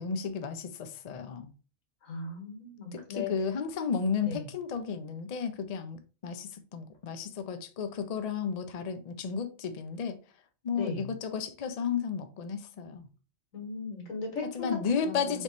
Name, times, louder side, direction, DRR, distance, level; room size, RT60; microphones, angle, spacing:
voice 1, 0.0-1.5 2.9-10.2 10.6-13.1 14.5-15.4, left 6 dB, 60° left, 0.4 m, -33 dB
voice 2, 2.0-3.3 4.3-4.5 10.7-11.2 13.5-14.8 15.0-15.4, left 4 dB, 90° left, 1.9 m, -37 dB
3.5 x 3.0 x 4.0 m
omnidirectional pair, 1.4 m